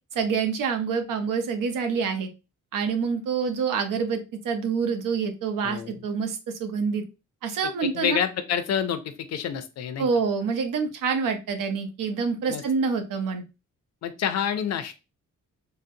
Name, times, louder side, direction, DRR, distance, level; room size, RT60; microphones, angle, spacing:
voice 1, 0.1-2.3 2.7-4.2 4.4-7.0 7.4-8.2 10.0-13.4, right 5 dB, 90° right, 7 dB, 0.7 m, -26 dB
voice 2, 5.6-5.9 7.8-10.1 12.5-12.6 14.0-14.9, left 8 dB, 55° left, 9 dB, 0.5 m, -28 dB
3.8 x 2.1 x 2.6 m, 0.28 s
wide cardioid pair, 175°, 32 cm